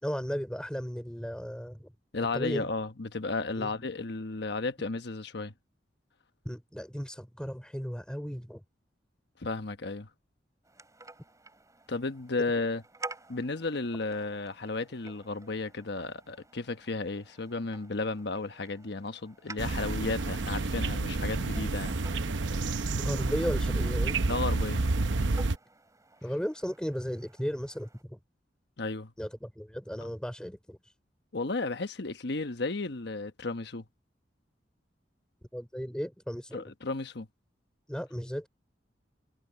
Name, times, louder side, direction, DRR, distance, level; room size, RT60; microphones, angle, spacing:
voice 1, 0.0-1.9 2.3-2.6 3.6-3.7 6.4-8.6 23.0-24.2 26.2-28.2 29.2-30.8 35.5-36.6 37.9-38.5, equal, 5° left, 4.0 m, -35 dB
voice 2, 2.1-5.5 9.4-10.1 11.9-12.8 13.3-22.0 24.3-24.8 28.8-29.1 30.0-30.1 31.3-33.8 36.5-37.3, left 3 dB, 65° left, 1.2 m, -33 dB
sound 1, 10.6-28.0, right 3 dB, 20° right, 5.3 m, -51 dB
sound 2, 19.6-25.6, right 3 dB, 85° right, 0.8 m, -29 dB
head